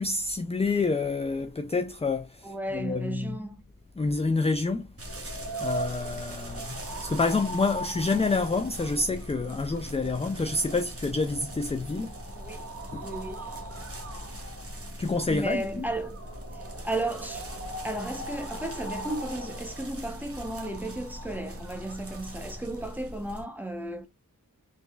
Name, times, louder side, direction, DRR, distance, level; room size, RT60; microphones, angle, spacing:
voice 1, 0.0-3.4 4.0-12.1 12.9-13.1 15.0-15.9, left 3 dB, 20° left, 0.3 m, -28 dB
voice 2, 2.4-3.6 12.4-12.7 13.0-13.5 15.3-16.2 16.5-17.5 17.8-24.1, right 1 dB, 5° right, 0.8 m, -34 dB
sound 1, 5.0-23.4, right 1 dB, 40° right, 1.0 m, -39 dB
3.8 x 3.1 x 2.3 m
wide cardioid pair, 55°, 35 cm